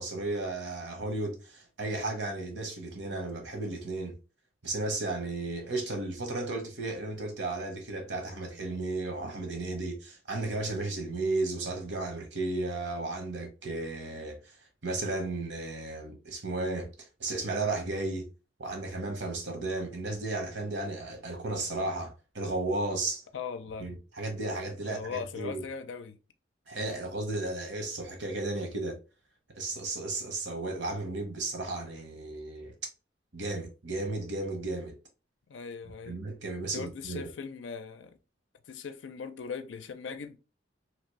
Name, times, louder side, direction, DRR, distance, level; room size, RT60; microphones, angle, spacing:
voice 1, 0.0-4.1 4.6-14.5 14.8-16.9 17.2-18.3 18.6-23.2 23.8-25.6 26.7-29.0 29.6-32.7 33.3-34.9 36.1-37.3, right 2 dB, 70° right, 1.0 m, -34 dB
voice 2, 23.3-23.9 24.8-26.2 35.5-36.2 36.7-38.2 38.7-40.4, left 5 dB, 90° left, 0.4 m, -39 dB
2.9 x 2.5 x 3.0 m
head